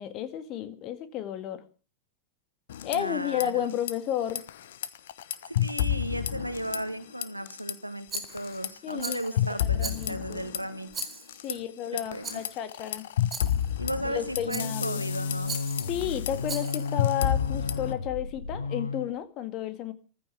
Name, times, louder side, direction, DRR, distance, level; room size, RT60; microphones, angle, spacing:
voice 1, 0.0-1.6 2.8-4.4 8.8-10.4 11.4-13.0 14.0-15.0 15.9-19.9, left 10 dB, 40° left, 11 dB, 1.9 m, -32 dB
sound 1, 2.7-3.5 3.7-3.9 4.3-7.0 7.2-7.7 8.2-11.5 12.0-17.9, left 11 dB, 60° left, 0.9 m, -30 dB
voice 2, 2.9-3.7 5.5-11.6 11.9-12.4 13.8-15.6, right 1 dB, 90° right, 11 dB, 1.5 m, -35 dB
Rattle, 8.1-8.6 9.0-9.4 9.8-10.3 10.9-11.5 12.2-12.6 13.3-13.7 14.5-14.9 15.5-15.9 16.4-16.9, right 5 dB, 20° right, 4.6 m, -39 dB
sound 2, 14.2-19.1, left 4 dB, 75° left, 1.8 m, -33 dB
14.5 x 13.5 x 5.8 m, 0.37 s
figure-of-eight pair, 90°, 0 cm